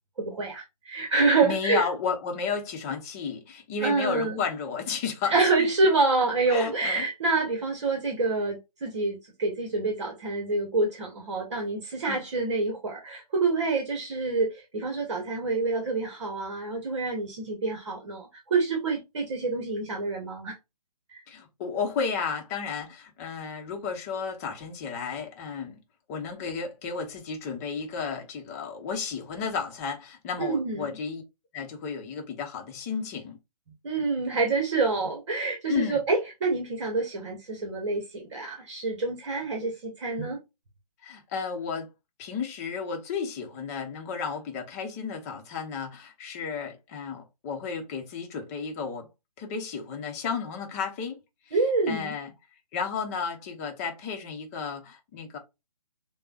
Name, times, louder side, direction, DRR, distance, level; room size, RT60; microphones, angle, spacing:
voice 1, 0.2-1.9 3.8-4.4 5.3-20.6 21.1-21.2 30.4-30.9 33.8-40.4 51.5-52.1, right 3 dB, 45° right, 1.2 m, -27 dB
voice 2, 1.4-5.3 5.6-5.7 6.5-7.1 12.1-12.2 21.3-25.8 26.1-31.2 31.5-33.4 35.0-35.1 35.6-36.0 41.0-41.9 42.2-49.1 49.4-51.2 51.5-51.6 51.9-52.3 52.7-55.4, left 5 dB, 25° left, 0.9 m, -33 dB
6.6 x 2.3 x 2.5 m
figure-of-eight pair, 140°, 20 cm